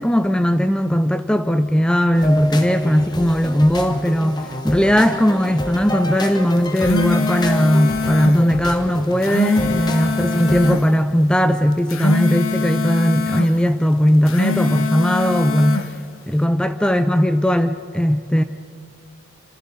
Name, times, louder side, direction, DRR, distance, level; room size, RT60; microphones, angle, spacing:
voice 1, 0.0-15.9 16.3-18.4, equal, 5° left, 0.5 m, -18 dB
sound 1, 2.1-10.8, left 1 dB, 20° left, 1.2 m, -29 dB
sound 2, 6.6-8.4 9.0-10.8 11.7-13.5 14.1-15.9, left 3 dB, 90° left, 1.3 m, -23 dB
27.5 x 26.5 x 4.2 m
head